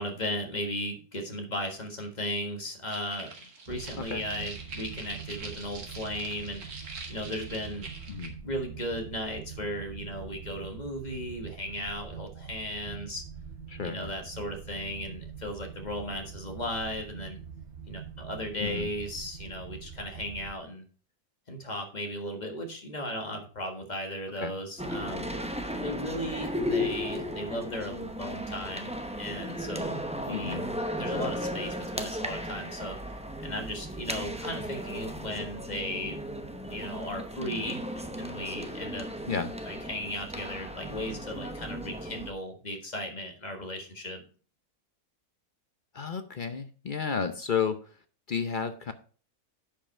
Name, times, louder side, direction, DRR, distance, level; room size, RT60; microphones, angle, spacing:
voice 1, 0.0-3.3 3.7-6.6 7.1-7.9 8.4-13.2 13.8-17.4 17.9-20.8 21.5-25.3 25.7-28.9 29.2-30.0 30.3-30.6 31.0-33.1 33.4-36.2 36.7-39.1 39.6-44.2, left 1 dB, 30° left, 4 dB, 1.7 m, -36 dB
sound 1, 2.9-8.3, right 3 dB, 70° right, 2.1 m, -44 dB
sound 2, 3.7-20.5, right 7 dB, 50° right, 1.2 m, -44 dB
voice 2, 13.7-14.1 18.6-18.9 24.4-24.5 30.3-30.6 39.3-39.5 45.9-48.0 48.3-48.9, left 6 dB, 50° left, 9 dB, 0.6 m, -32 dB
sound 3, 24.8-42.3, equal, 5° right, 0.5 m, -35 dB
10.0 x 5.4 x 4.4 m, 0.40 s
omnidirectional pair, 1.6 m